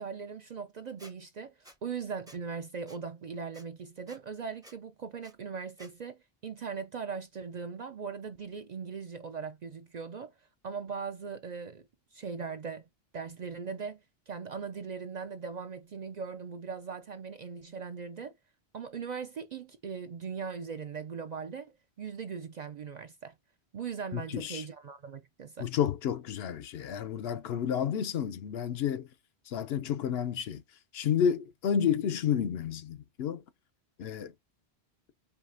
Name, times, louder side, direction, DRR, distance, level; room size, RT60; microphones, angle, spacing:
voice 1, 0.0-10.3 10.6-11.8 12.1-12.9 13.1-14.0 14.3-18.3 18.7-23.3 23.7-25.7, right 5 dB, 55° right, 0.5 m, -39 dB
Squeak, 1.0-1.1 1.6-1.8 2.3-2.4 2.9-3.0 3.5-3.6 4.1-4.2 4.6-4.8 5.2-5.3 5.8-5.9, equal, 5° right, 0.5 m, -53 dB
voice 2, 24.1-24.6 25.6-29.1 29.5-30.6 30.9-33.4 34.0-34.3, left 8 dB, 75° left, 0.8 m, -30 dB
4.8 x 2.7 x 2.5 m
omnidirectional pair, 1.1 m